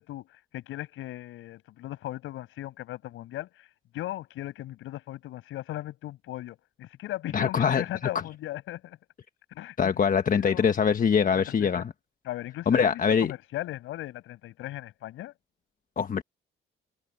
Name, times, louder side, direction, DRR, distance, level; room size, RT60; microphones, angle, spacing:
voice 1, 0.0-3.7 3.9-9.0 9.5-9.8 10.1-10.7 11.3-11.8 12.2-15.3, left 15 dB, 90° left, 6.5 m, -38 dB
voice 2, 7.3-7.8 9.8-11.8 12.7-13.3 16.0-16.2, left 7 dB, 45° left, 1.2 m, -23 dB
cardioid pair, 90°, 20 cm